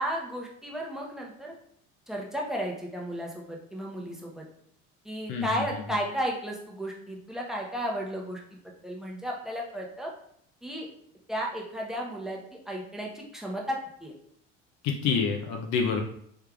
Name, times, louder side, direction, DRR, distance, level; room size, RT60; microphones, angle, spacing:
voice 1, 0.0-1.5 2.1-4.4 5.0-8.4 8.8-10.1 10.6-10.9 11.3-14.1, equal, ahead, -1 dB, 0.9 m, -34 dB
voice 2, 5.3-5.6 14.8-16.0, left 6 dB, 50° left, 2 dB, 0.6 m, -27 dB
3.3 x 3.3 x 2.4 m, 0.66 s
hypercardioid pair, 70°, 37 cm